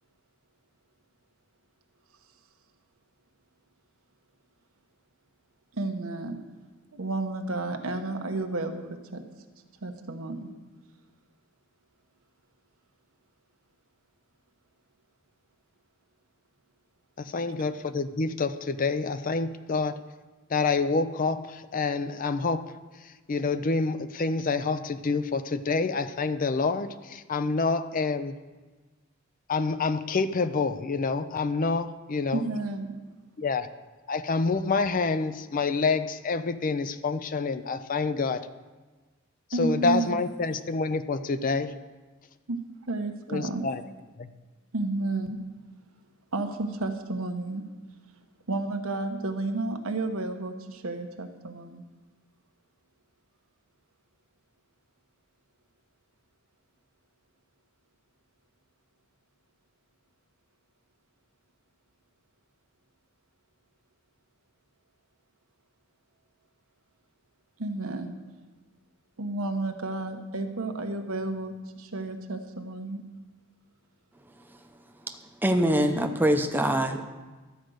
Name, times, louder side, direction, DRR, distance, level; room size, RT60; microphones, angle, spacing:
voice 1, 5.7-6.4 6.9-9.2 9.8-10.5 32.3-33.0 39.5-40.2 42.5-42.6 42.9-43.7 44.7-45.4 46.3-47.6 48.5-51.8 67.6-68.2 69.2-73.0, right 2 dB, 85° right, 6 dB, 1.0 m, -31 dB
voice 2, 17.2-20.0 20.5-22.7 23.0-28.4 29.5-32.5 33.4-33.7 34.1-38.5 39.6-41.7 43.3-43.8 44.2-44.3, left 4 dB, 40° left, 12 dB, 0.5 m, -27 dB
voice 3, 75.4-77.0, right 1 dB, 10° right, 5 dB, 0.7 m, -24 dB
12.5 x 5.1 x 7.8 m, 1.3 s
head